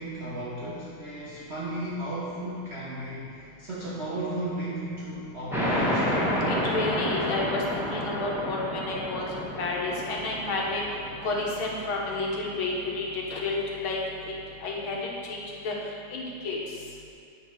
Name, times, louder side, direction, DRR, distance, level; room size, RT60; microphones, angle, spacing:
voice 1, 0.0-6.2, right 1 dB, 40° right, -8 dB, 1.0 m, -35 dB
sound 1, 5.5-12.7, equal, ahead, 0.9 m, -30 dB
voice 2, 6.2-10.8 11.2-14.0 14.6-15.4 15.6-15.7 16.1-16.6, left 3 dB, 80° left, -2 dB, 2.0 m, -31 dB
9.5 x 4.1 x 5.9 m, 2.6 s
omnidirectional pair, 2.2 m